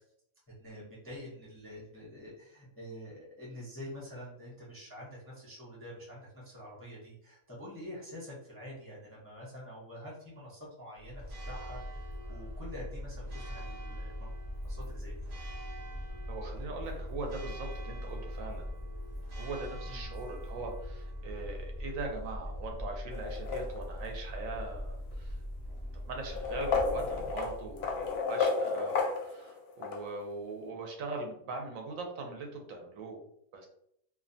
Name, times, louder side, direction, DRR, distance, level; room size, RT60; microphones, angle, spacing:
voice 1, 0.6-15.2 19.8-20.2, equal, 20° left, -6 dB, 0.4 m, -47 dB
Church bell, 11.0-28.2, equal, 55° right, 0.4 m, -41 dB
voice 2, 16.3-18.7 19.4-25.4 26.1-33.2 33.5-33.7, right 3 dB, 75° right, 2 dB, 1.0 m, -41 dB
sound 1, 23.1-24.1 25.1-25.2 26.2-30.0, left 4 dB, 65° left, 0.7 m, -32 dB
2.6 x 2.1 x 2.5 m, 0.74 s
omnidirectional pair, 1.4 m